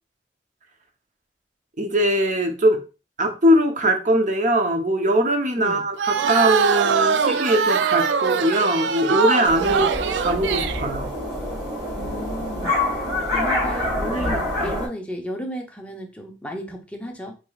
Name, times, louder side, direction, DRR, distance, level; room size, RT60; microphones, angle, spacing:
voice 1, 1.8-2.8 3.2-11.1 14.1-14.7, equal, 45° right, 0.8 m, -21 dB
sound 1, 6.0-10.8, right 6 dB, 75° right, 0.3 m, -22 dB
sound 2, 9.4-14.9, left 1 dB, 25° right, 2.2 m, -26 dB
voice 2, 12.0-12.7 13.3-17.4, equal, 5° left, 0.7 m, -33 dB
4.6 x 3.1 x 2.3 m
head